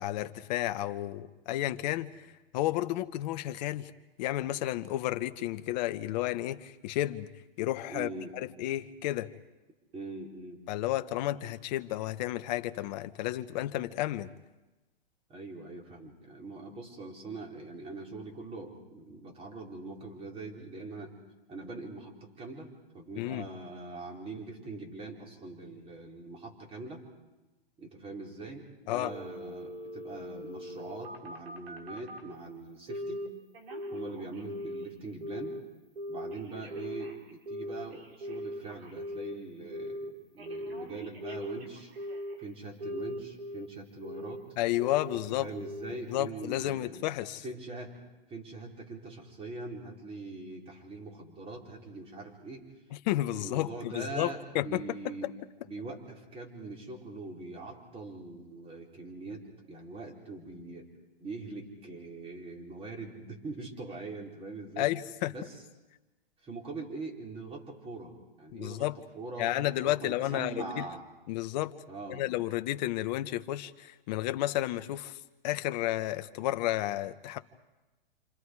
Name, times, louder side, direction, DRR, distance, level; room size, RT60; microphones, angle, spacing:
voice 1, 0.0-2.3 2.5-3.9 4.2-7.3 7.6-9.3 10.7-14.3 23.2-23.4 28.9-29.1 44.6-45.5 46.1-47.4 53.0-54.8 64.8-65.3 68.5-69.0 69.4-70.8 71.3-71.8 72.1-75.2 75.4-77.4, left 15 dB, 45° left, 11 dB, 1.2 m, -32 dB
voice 2, 7.9-8.3 9.9-10.6 15.3-21.2 21.5-27.0 27.8-33.2 33.9-35.6 36.1-41.9 42.4-44.4 45.4-47.1 47.4-48.0 48.3-52.7 53.3-55.3 55.6-60.9 61.2-64.9 65.3-65.5 66.4-68.9 69.1-71.1 71.9-72.2, right 3 dB, 20° right, 0 dB, 5.0 m, -42 dB
Telephone, 29.0-32.3 32.9-33.3 33.5-34.9 35.2-35.6 36.0-39.3 39.7-40.1 40.4-42.4 42.8-43.7 44.0-44.4 44.8-45.2 45.5-45.9 46.3-46.4, equal, 80° right, 5.9 m, -40 dB
29.0 x 27.5 x 4.9 m, 1.1 s
hypercardioid pair, 135°, 30 cm